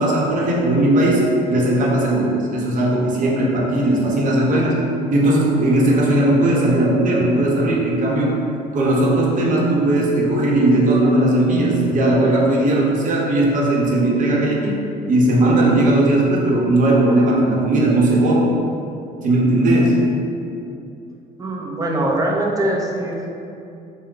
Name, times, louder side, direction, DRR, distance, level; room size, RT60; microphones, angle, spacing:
voice 1, 0.0-4.8 5.1-8.4 8.7-18.5 19.2-20.0, right 1 dB, 50° right, -3 dB, 0.9 m, -17 dB
voice 2, 21.4-23.3, right 1 dB, 20° right, -1 dB, 0.6 m, -22 dB
4.5 x 2.1 x 3.8 m, 2.6 s
cardioid pair, 110°, 17 cm